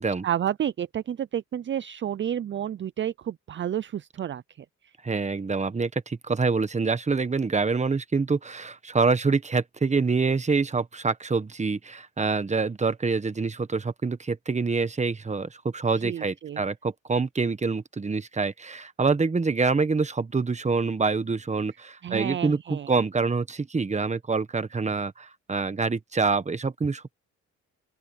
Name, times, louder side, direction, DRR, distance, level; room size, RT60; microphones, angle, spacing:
voice 1, 0.2-4.4 16.0-16.6 22.0-23.0, right 10 dB, 40° right, 0.5 m, -30 dB
voice 2, 5.0-27.2, right 4 dB, 25° right, 1.4 m, -26 dB
open air
cardioid pair, 90°, 30 cm